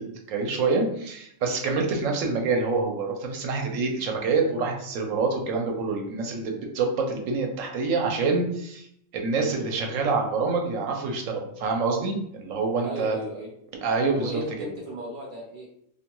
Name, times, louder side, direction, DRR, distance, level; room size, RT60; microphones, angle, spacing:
voice 1, 0.0-8.9 9.1-13.2 13.8-14.4, right 4 dB, 80° right, 2 dB, 0.9 m, -26 dB
voice 2, 12.8-13.5 14.1-15.7, right 1 dB, 60° right, -4 dB, 0.5 m, -35 dB
2.5 x 2.2 x 2.9 m, 0.71 s
omnidirectional pair, 1.4 m